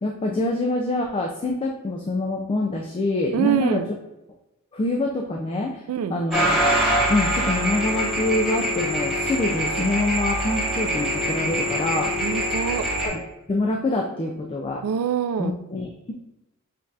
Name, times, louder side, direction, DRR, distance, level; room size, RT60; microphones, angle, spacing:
voice 1, 0.0-3.8 4.7-5.8 6.1-6.5 7.1-12.1 13.0-13.2 13.5-14.8 15.4-16.1, left 2 dB, 25° left, 0 dB, 0.3 m, -25 dB
voice 2, 3.3-3.9 5.9-6.2 12.2-12.9 14.8-15.6, right 8 dB, 70° right, 10 dB, 0.3 m, -25 dB
sound 1, 6.3-13.1, equal, ahead, 1.3 m, -24 dB
6.5 x 2.4 x 2.6 m, 0.93 s
head